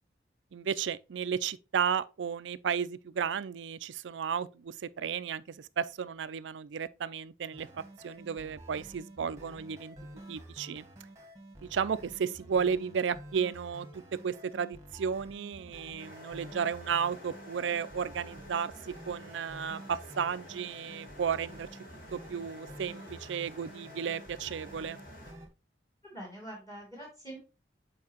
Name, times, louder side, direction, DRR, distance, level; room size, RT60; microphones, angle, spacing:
voice 1, 0.5-10.0 10.3-10.8 11.7-13.9 14.2-21.7 22.1-25.0, right 7 dB, 90° right, 0.4 m, -33 dB
sound 1, 7.5-25.5, right 1 dB, 15° right, 1.2 m, -50 dB
sound 2, 16.0-25.3, left 1 dB, 50° left, 1.5 m, -51 dB
voice 2, 26.0-27.4, right 1 dB, 20° left, 2.4 m, -44 dB
7.6 x 4.6 x 2.9 m
head